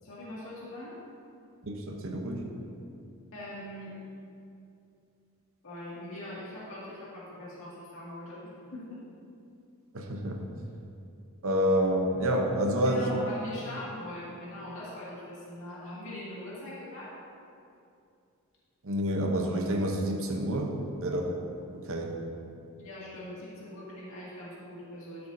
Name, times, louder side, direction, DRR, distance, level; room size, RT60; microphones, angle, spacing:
voice 1, 0.0-1.0 3.3-3.9 5.6-9.0 12.8-17.2 22.8-25.3, left 1 dB, 65° left, -7 dB, 2.1 m, -42 dB
voice 2, 1.6-2.5 9.9-10.4 11.4-13.1 18.8-20.8 21.0-21.4 21.7-22.1, equal, 65° right, 2 dB, 0.8 m, -28 dB
12.0 x 6.7 x 2.7 m, 2.5 s
head